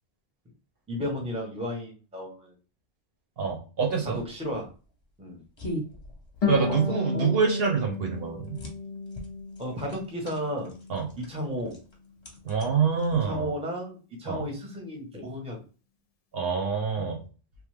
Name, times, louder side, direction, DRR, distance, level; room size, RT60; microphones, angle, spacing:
voice 1, 0.9-2.5 4.0-4.7 5.2-5.4 6.5-6.8 7.1-7.4 9.6-10.7 11.2-11.8 13.3-15.6, equal, 5° right, 0 dB, 0.7 m, -33 dB
voice 2, 3.4-4.2 6.5-8.6 10.9-11.1 12.4-13.5 14.3-14.5 16.3-17.2, right 6 dB, 70° right, 1 dB, 0.9 m, -26 dB
sound 1, 4.2-13.6, equal, 30° left, 0.8 m, -43 dB
Harp, 6.4-9.8 10.2-11.2, left 4 dB, 55° left, 0.4 m, -32 dB
3.1 x 2.0 x 3.1 m, 0.35 s
omnidirectional pair, 1.1 m